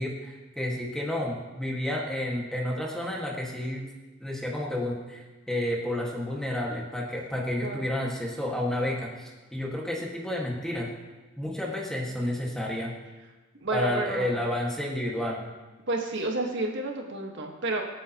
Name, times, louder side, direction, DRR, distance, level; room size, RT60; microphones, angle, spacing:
voice 1, 0.0-3.8 4.2-10.9 11.4-12.9 13.7-15.5, left 1 dB, 5° left, -2 dB, 1.8 m, -31 dB
voice 2, 13.6-14.3 15.9-17.8, right 2 dB, 55° right, 1 dB, 1.6 m, -30 dB
25.5 x 8.7 x 3.0 m, 1.2 s
head